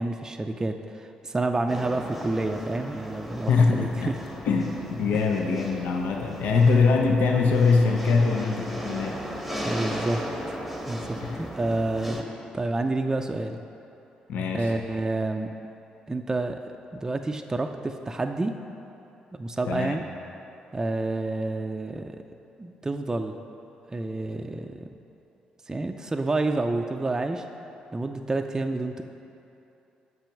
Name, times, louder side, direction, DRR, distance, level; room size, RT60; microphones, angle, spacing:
voice 1, 0.0-4.2 9.6-12.2 12.5-13.6 14.5-15.5 16.1-16.6 16.9-18.6 19.3-20.0 20.7-22.2 22.6-23.4 23.9-24.8 25.7-27.4 27.9-29.0, right 2 dB, 20° right, 5 dB, 0.4 m, -29 dB
sound 1, 1.7-12.2, equal, 5° left, 0.9 m, -36 dB
voice 2, 3.5-4.1 4.5-9.2 11.2-11.4 14.3-14.7 19.7-20.0, left 4 dB, 80° left, 2 dB, 0.5 m, -23 dB
5.8 x 5.4 x 5.8 m, 2.9 s
supercardioid pair, 65°, 3 cm